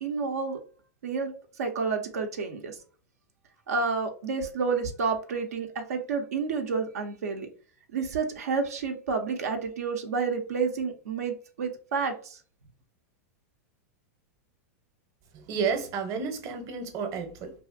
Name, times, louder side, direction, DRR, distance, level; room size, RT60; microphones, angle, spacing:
voice 1, 0.0-0.6 1.0-1.3 1.6-2.8 3.7-7.5 7.9-12.4, right 5 dB, 85° right, 0.6 m, -30 dB
voice 2, 15.3-17.5, right 5 dB, 40° right, 0.8 m, -31 dB
2.6 x 2.4 x 2.5 m
hypercardioid pair, 115°, 8 cm